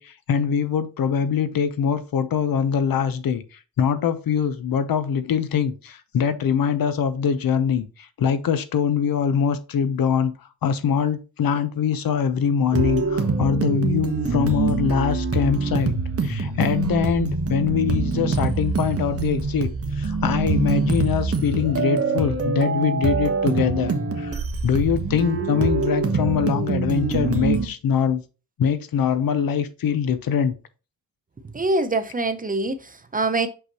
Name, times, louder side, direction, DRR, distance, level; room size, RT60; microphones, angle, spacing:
voice 1, 0.0-10.3 10.6-15.9 16.2-28.2 28.6-30.5, left 7 dB, 65° left, 0.8 m, -23 dB
sound 1, 12.7-27.7, right 4 dB, 35° right, 1.2 m, -24 dB
voice 2, 31.5-33.5, right 2 dB, 20° right, 0.6 m, -24 dB
6.0 x 5.5 x 2.9 m
cardioid pair, 95°, 38 cm